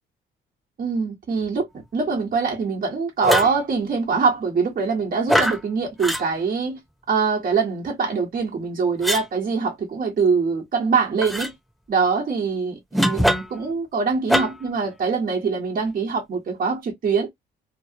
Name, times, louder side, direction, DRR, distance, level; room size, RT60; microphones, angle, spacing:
voice 1, 0.8-1.7 1.9-6.8 7.1-11.5 11.9-17.3, right 5 dB, 45° right, 1.4 m, -23 dB
sound 1, 3.2-3.6 5.3-5.6 6.0-6.2 9.0-9.3 11.2-11.5 12.9-13.6 14.3-14.7, equal, ahead, 1.2 m, -22 dB
3.1 x 2.3 x 2.9 m
cardioid pair, 90°, 20 cm